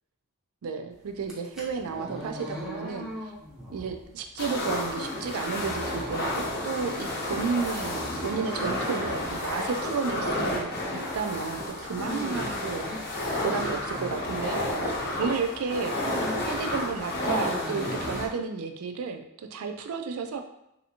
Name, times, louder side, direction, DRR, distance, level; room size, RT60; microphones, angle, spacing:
voice 1, 0.6-3.1 3.7-10.8 11.1-12.9 13.4-16.1 16.4-20.4, right 5 dB, 80° right, 6 dB, 0.4 m, -32 dB
sound 1, 1.2-15.2 15.6-16.6 16.8-18.2, equal, ahead, 0.6 m, -39 dB
sound 2, 4.4-18.3, left 1 dB, 50° left, 0.6 m, -31 dB
3.3 x 2.7 x 2.8 m, 0.83 s
head